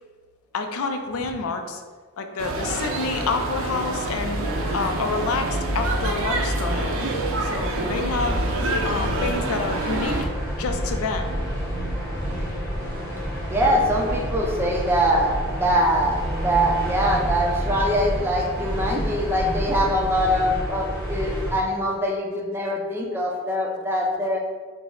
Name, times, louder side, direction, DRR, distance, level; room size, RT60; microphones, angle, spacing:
voice 1, 0.5-1.8 2.2-4.4 4.7-7.0 7.4-8.4 8.8-10.3 10.6-11.4, left 4 dB, 80° left, 6 dB, 0.4 m, -28 dB
sound 1, 2.4-10.2, right 1 dB, 70° right, 0.5 m, -27 dB
sound 2, 4.1-20.1, right 1 dB, 35° left, 1.1 m, -35 dB
sound 3, 6.5-21.5, equal, 10° left, 1.0 m, -30 dB
voice 2, 13.5-24.4, equal, 10° right, -1 dB, 0.4 m, -23 dB
4.5 x 2.0 x 3.8 m, 1.5 s
head